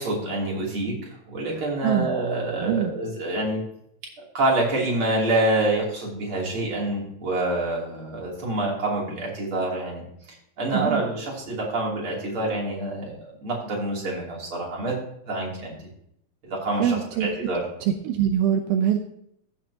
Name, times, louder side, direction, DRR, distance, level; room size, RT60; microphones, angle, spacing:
voice 1, 0.0-3.6 4.3-10.0 10.6-15.0 15.3-15.8 16.5-17.6, right 2 dB, 35° right, -3 dB, 3.5 m, -27 dB
voice 2, 1.5-2.1 2.6-2.9 10.7-11.0 16.8-17.3 17.8-19.0, right 9 dB, 80° right, 5 dB, 2.5 m, -24 dB
15.0 x 7.6 x 2.8 m, 0.72 s
omnidirectional pair, 4.3 m